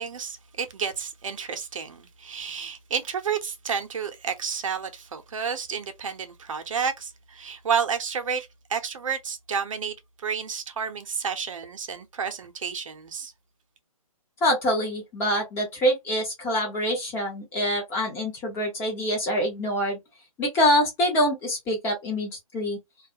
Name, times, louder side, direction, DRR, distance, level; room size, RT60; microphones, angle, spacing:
voice 1, 0.0-13.3, right 6 dB, 60° right, 0.7 m, -31 dB
voice 2, 14.4-20.0 20.4-22.8, equal, 15° left, 0.6 m, -25 dB
2.3 x 2.0 x 2.6 m
hypercardioid pair, 150°, 19 cm